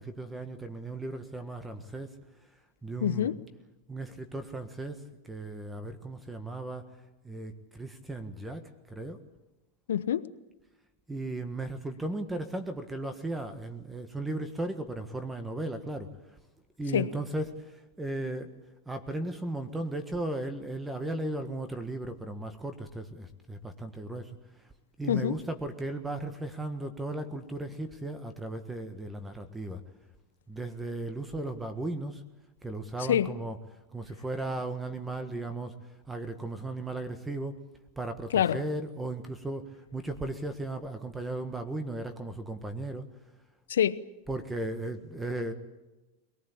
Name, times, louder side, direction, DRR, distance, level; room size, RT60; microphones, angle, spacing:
voice 1, 0.0-2.1 2.8-3.4 3.9-6.9 7.2-9.2 11.1-16.1 16.8-18.5 18.9-24.4 25.0-29.8 30.5-32.2 32.6-33.6 33.9-35.8 36.1-37.5 38.0-43.1 44.3-45.5, right 2 dB, 10° right, 1.6 m, -36 dB
voice 2, 3.0-3.4 9.9-10.3 16.9-17.1 25.1-25.3 33.1-33.3 38.3-38.6 43.7-44.0, left 10 dB, 90° left, 1.0 m, -26 dB
23.5 x 19.0 x 8.6 m
supercardioid pair, 125°, 0 cm